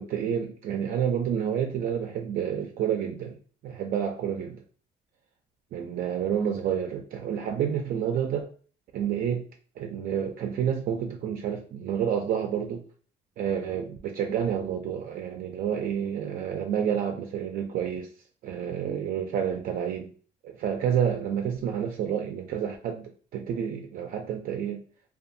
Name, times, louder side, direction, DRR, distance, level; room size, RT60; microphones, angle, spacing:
voice 1, 0.0-3.4 3.6-4.6 5.7-8.5 8.9-9.4 9.8-12.8 13.4-18.1 18.4-20.1 20.4-24.8, right 8 dB, 60° right, 2 dB, 0.4 m, -29 dB
2.5 x 2.3 x 2.6 m, 0.42 s
cardioid pair, 110°, 17 cm